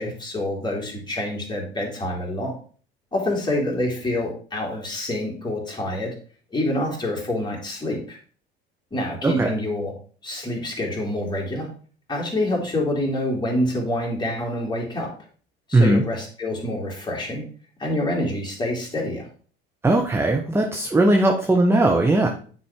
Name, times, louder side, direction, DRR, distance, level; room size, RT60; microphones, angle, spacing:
voice 1, 0.0-2.5 3.1-6.1 6.5-8.2 8.9-9.9 10.2-11.7 12.1-15.1 15.7-17.4 17.8-19.3, left 1 dB, 15° left, -2 dB, 2.9 m, -26 dB
voice 2, 15.7-16.0 19.8-22.3, right 2 dB, 10° right, 3 dB, 0.9 m, -18 dB
9.5 x 4.1 x 3.6 m, 0.42 s
figure-of-eight pair, 60°, 30 cm